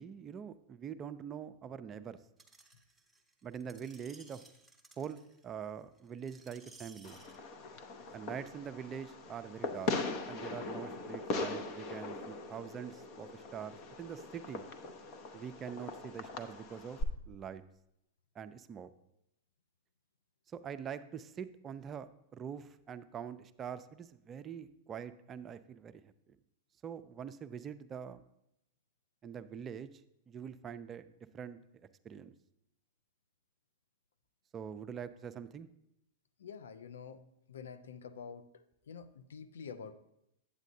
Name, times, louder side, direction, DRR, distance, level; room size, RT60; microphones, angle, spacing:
voice 1, 0.0-2.2 3.4-4.4 5.0-7.2 8.1-10.0 10.3-14.7 15.3-17.0 17.3-17.6 18.4-18.9 20.5-26.1 26.8-28.2 29.2-29.9 30.3-31.6 32.0-32.3 34.5-35.7, right 7 dB, 25° right, 12 dB, 0.4 m, -44 dB
Screech, 2.4-7.4 8.1-8.2, right 3 dB, 5° right, 0.8 m, -59 dB
Fireworks, 7.0-17.0, left 3 dB, 45° left, 0.7 m, -40 dB
voice 2, 36.4-37.2 37.5-39.9, left 6 dB, 75° left, 11 dB, 0.5 m, -48 dB
8.3 x 8.1 x 2.7 m, 0.81 s
hypercardioid pair, 105°, 0 cm